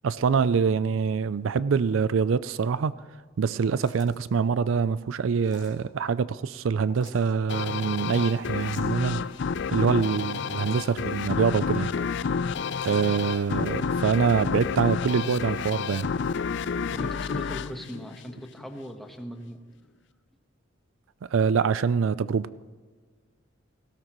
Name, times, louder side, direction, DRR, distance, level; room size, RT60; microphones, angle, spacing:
voice 1, 0.0-2.9 3.4-9.2 9.7-11.9 12.8-16.1 21.3-22.5, right 6 dB, 80° right, 16 dB, 0.4 m, -25 dB
sound 1, 3.5-4.3 5.4-5.8 6.8-7.3 8.6-9.0 10.2-11.1 12.6-13.0, left 4 dB, 25° left, 3.0 m, -52 dB
sound 2, 7.5-18.7, left 5 dB, 65° left, 0.4 m, -30 dB
voice 2, 16.9-19.6, equal, ahead, 3 dB, 1.2 m, -39 dB
18.5 x 16.5 x 3.1 m, 1.5 s
head